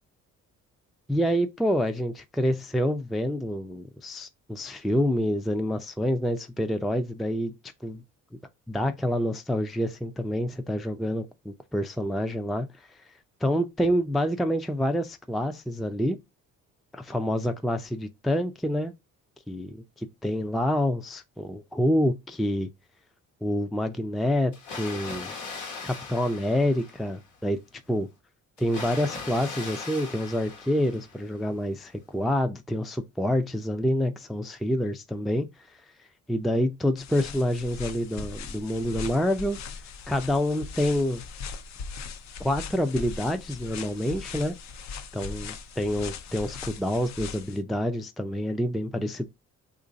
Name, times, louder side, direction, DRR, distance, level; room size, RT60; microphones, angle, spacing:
voice 1, 1.1-7.5 7.8-8.0 8.7-13.0 13.4-16.2 16.9-18.9 19.5-22.7 23.4-25.3 25.8-27.6 27.9-28.1 28.6-35.5 36.3-39.6 40.1-41.2 42.4-44.5 45.1-49.3, equal, ahead, 0.3 m, -27 dB
Water, 24.5-27.3 28.6-31.4, left 4 dB, 90° left, 1.2 m, -39 dB
sound 1, 37.0-47.6, left 5 dB, 65° left, 0.6 m, -39 dB
3.0 x 2.5 x 3.8 m
cardioid pair, 90°, 30 cm